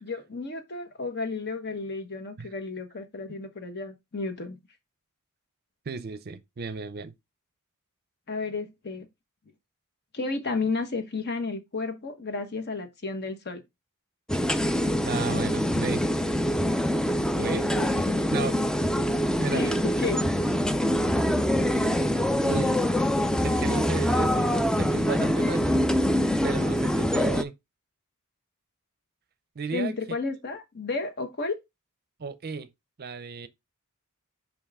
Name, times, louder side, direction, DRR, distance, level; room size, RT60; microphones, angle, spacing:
voice 1, 0.0-4.6 8.3-9.1 10.1-13.6 17.7-18.3 19.0-19.1 19.5-20.2 29.7-31.6, left 3 dB, 50° left, 1.2 m, -32 dB
voice 2, 5.9-7.1 15.0-16.0 17.3-17.7 18.3-18.6 19.4-19.8 21.7-22.0 22.4-22.8 23.4-25.8 26.4-27.5 29.6-29.9 32.2-32.7 33.0-33.5, right 4 dB, 45° right, 0.5 m, -34 dB
sound 1, 14.3-27.4, equal, 5° left, 0.4 m, -24 dB
5.5 x 5.2 x 3.5 m
head